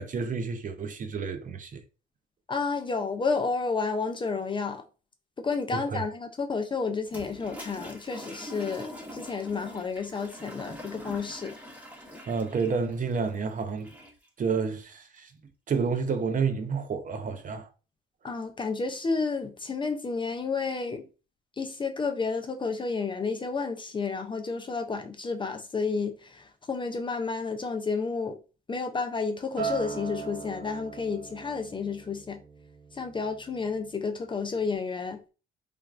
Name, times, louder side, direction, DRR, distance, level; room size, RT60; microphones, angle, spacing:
voice 1, 0.0-1.8 5.7-6.0 12.3-13.9 14.4-15.3 15.7-17.7, right 5 dB, 40° right, 0.5 m, -30 dB
voice 2, 2.5-4.8 5.4-11.5 18.2-21.0 21.6-28.4 28.7-32.4 32.9-35.2, left 4 dB, 25° left, 0.4 m, -31 dB
Toilet flush, 7.0-14.3, equal, 10° right, 0.8 m, -44 dB
Acoustic guitar, 29.6-34.0 34.4-34.8, right 6 dB, 80° right, 1.4 m, -39 dB
3.2 x 2.3 x 2.4 m
cardioid pair, 90°, 20 cm